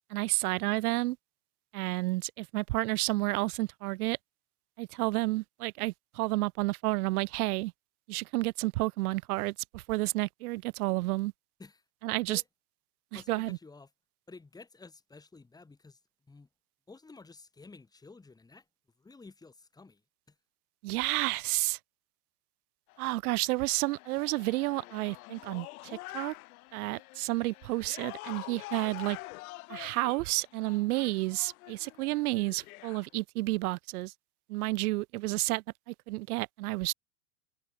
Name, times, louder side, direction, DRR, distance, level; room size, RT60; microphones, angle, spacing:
voice 1, 0.1-1.2 1.7-4.2 4.8-7.7 8.1-11.3 12.0-12.4 13.1-13.6 20.8-21.8 23.0-26.3 26.7-29.2 29.7-34.1 34.5-36.9, right 21 dB, 65° right, 0.7 m, -31 dB
voice 2, 13.1-13.9 14.3-16.0 16.3-16.5 16.9-18.6 19.0-20.0 20.3-20.4, left 3 dB, 10° left, 2.3 m, -51 dB
sound 1, 22.9-33.1, left 21 dB, 60° left, 3.5 m, -47 dB
supercardioid pair, 135°, 47 cm